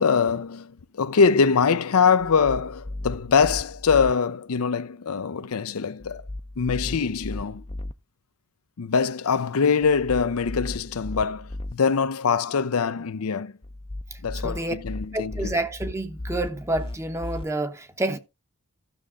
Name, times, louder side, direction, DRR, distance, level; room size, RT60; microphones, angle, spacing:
voice 1, 0.0-6.2 6.6-7.6 8.8-13.5 14.2-15.6, left 5 dB, 80° left, 0.6 m, -23 dB
sound 1, 2.2-4.1 6.0-7.9 9.8-11.7 13.6-17.4, left 1 dB, 25° left, 0.5 m, -36 dB
voice 2, 14.1-14.7 15.1-18.2, right 1 dB, 10° right, 0.8 m, -29 dB
13.5 x 6.5 x 3.6 m
head